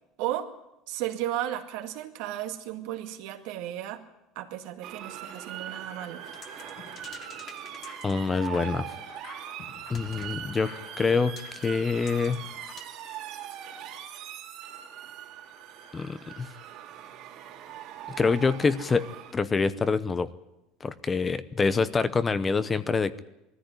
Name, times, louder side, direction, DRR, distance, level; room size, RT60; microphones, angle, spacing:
voice 1, 0.2-0.5 0.9-4.1 4.4-6.2, right 12 dB, 70° right, 7 dB, 2.0 m, -34 dB
Motor vehicle (road) / Siren, 4.8-19.3, right 10 dB, 55° right, 3.3 m, -41 dB
sound 1, 6.3-12.8, left 6 dB, 35° left, 1.5 m, -49 dB
voice 2, 8.0-8.9 9.9-10.7 11.0-11.3 11.6-12.4 15.9-16.5 18.2-19.1 19.3-20.3 20.8-23.2, left 4 dB, 20° left, 14 dB, 0.8 m, -26 dB
20.0 x 14.0 x 9.8 m, 0.91 s
cardioid pair, 140°, 0 cm